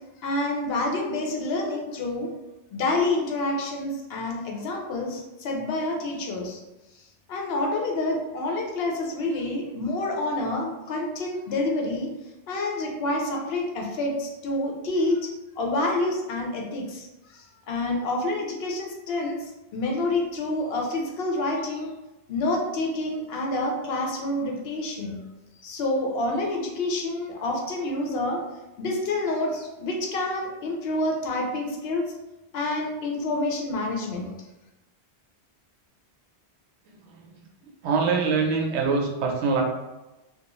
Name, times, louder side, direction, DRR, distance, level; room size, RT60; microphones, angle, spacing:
voice 1, 0.2-2.3 2.7-6.6 7.3-12.1 12.5-21.9 22.3-25.2 25.6-28.4 28.8-32.1 32.5-34.3, left 2 dB, 70° left, 0 dB, 0.8 m, -28 dB
voice 2, 37.8-39.6, right 4 dB, 85° right, 0 dB, 0.9 m, -24 dB
2.4 x 2.3 x 2.9 m, 1.0 s
omnidirectional pair, 1.1 m